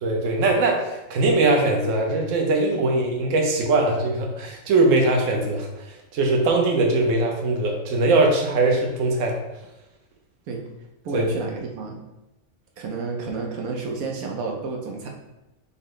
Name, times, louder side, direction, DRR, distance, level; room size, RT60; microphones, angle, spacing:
voice 1, 0.0-9.4 11.1-11.3, right 2 dB, 65° right, 1 dB, 1.1 m, -21 dB
voice 2, 11.0-12.0 12.8-15.1, right 4 dB, 90° right, 1 dB, 1.1 m, -30 dB
5.6 x 2.1 x 3.8 m, 0.95 s
omnidirectional pair, 1.4 m